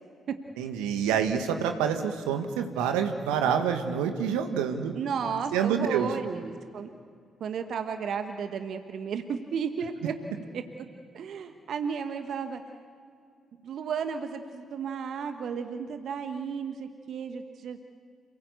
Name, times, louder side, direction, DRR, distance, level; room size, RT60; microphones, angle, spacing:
voice 1, 0.6-4.9 5.5-6.1, right 7 dB, 75° right, 6 dB, 1.5 m, -27 dB
voice 2, 5.0-6.9 7.4-10.1 10.5-10.6 11.1-12.6 13.6-17.8, right 6 dB, 60° right, 7 dB, 1.3 m, -33 dB
28.0 x 18.5 x 8.3 m, 2.2 s
hypercardioid pair, 40°, 0 cm